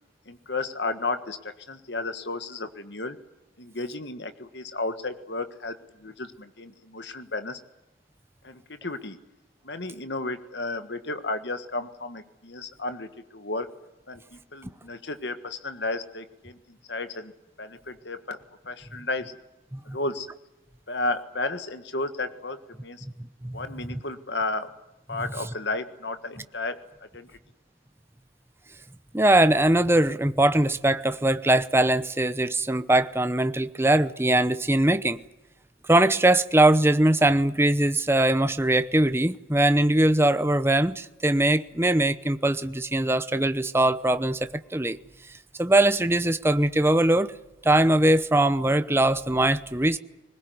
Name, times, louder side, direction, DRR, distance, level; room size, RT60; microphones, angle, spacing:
voice 1, 0.3-3.2 3.6-7.6 8.4-9.2 9.6-13.7 14.1-17.3 17.6-18.4 18.6-19.3 19.9-20.3 20.9-23.0 23.5-24.7 25.1-26.8 27.1-27.3, left 2 dB, 60° left, 1.5 m, -33 dB
voice 2, 29.1-35.2 35.8-45.0 45.6-47.3 47.6-50.0, right 1 dB, 10° right, 0.8 m, -21 dB
22.0 x 20.5 x 9.5 m
head